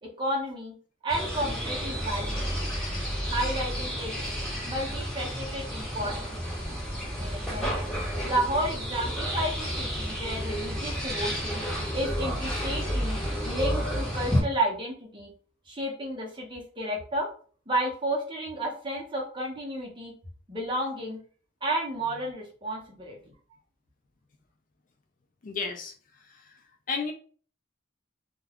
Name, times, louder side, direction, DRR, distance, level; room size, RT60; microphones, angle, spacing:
voice 1, 0.0-0.7 1.0-2.5 3.3-4.1 4.7-6.4 7.2-7.7 8.2-11.6 11.9-15.3 15.7-17.3 17.7-20.1 20.5-21.2 21.6-23.2, right 1 dB, 25° right, -1 dB, 0.8 m, -32 dB
sound 1, 1.1-14.4, equal, 5° left, 1.0 m, -31 dB
voice 2, 25.4-25.9 26.3-26.4 26.9-27.1, left 4 dB, 40° left, 4 dB, 0.4 m, -31 dB
2.3 x 2.3 x 3.4 m, 0.42 s
head